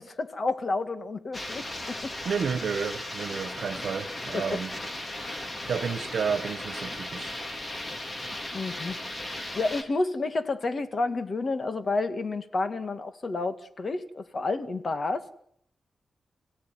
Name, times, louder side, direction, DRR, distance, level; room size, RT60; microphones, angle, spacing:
voice 1, 0.0-2.1 4.3-4.6 8.5-9.0 9.5-15.3, left 3 dB, 40° left, 2.1 m, -30 dB
sound 1, 1.3-9.8, left 1 dB, 25° left, 3.2 m, -36 dB
voice 2, 2.2-4.7 5.6-7.4, right 6 dB, 75° right, 1.7 m, -31 dB
29.5 x 17.0 x 9.5 m
wide cardioid pair, 145°, 0 cm